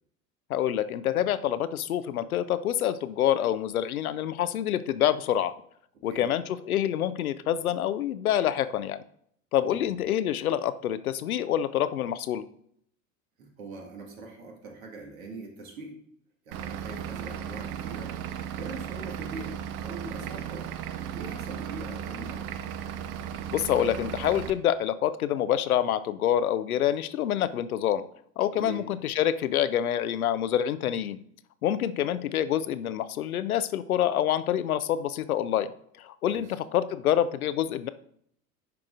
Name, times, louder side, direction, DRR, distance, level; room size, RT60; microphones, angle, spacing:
voice 1, 0.5-5.5 6.0-9.0 9.5-12.4 23.5-28.0 28.4-31.2 31.6-35.7 36.0-37.9, left 10 dB, 85° left, 14 dB, 0.5 m, -27 dB
voice 2, 9.6-10.0 13.4-15.9 16.5-18.1 18.6-19.6 19.8-20.7 21.1-22.6 28.6-28.9 36.3-36.5, right 3 dB, 75° right, 0 dB, 2.0 m, -42 dB
Vehicle / Engine, 16.5-24.5, right 9 dB, 45° right, 0.6 m, -36 dB
10.5 x 4.7 x 2.5 m, 0.67 s
figure-of-eight pair, 70°, 42 cm